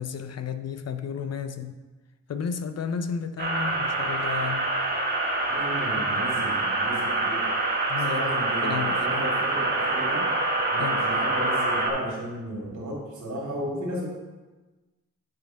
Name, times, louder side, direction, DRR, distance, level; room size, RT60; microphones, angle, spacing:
voice 1, 0.0-1.7 2.3-4.7 7.9-8.2 8.6-9.2 10.8-11.1, left 6 dB, 55° left, 0.5 m, -32 dB
sound 1, 3.4-11.9, right 2 dB, 35° right, 1.3 m, -26 dB
voice 2, 5.5-7.5 8.0-10.2 10.7-14.1, equal, 70° right, 2.4 m, -34 dB
9.4 x 3.5 x 4.5 m
wide cardioid pair, 100°, 31 cm